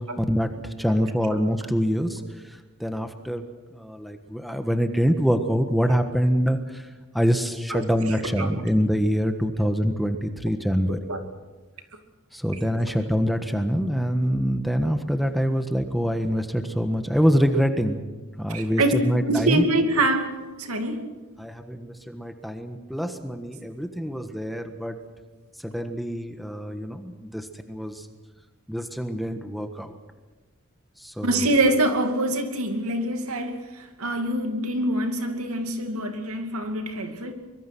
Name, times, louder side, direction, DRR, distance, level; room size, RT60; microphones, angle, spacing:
voice 1, 0.2-0.5 0.8-2.2 2.8-3.4 3.7-6.8 7.1-11.0 12.3-18.0 18.4-19.6 21.4-25.0 25.6-28.1 28.7-30.0 31.0-31.5, equal, ahead, 6 dB, 1.4 m, -25 dB
voice 2, 8.1-8.5 10.9-11.2 18.5-18.9 19.2-20.3 20.6-21.0 31.2-37.3, right 1 dB, 80° right, 6 dB, 2.6 m, -25 dB
24.5 x 22.5 x 6.2 m, 1.2 s
head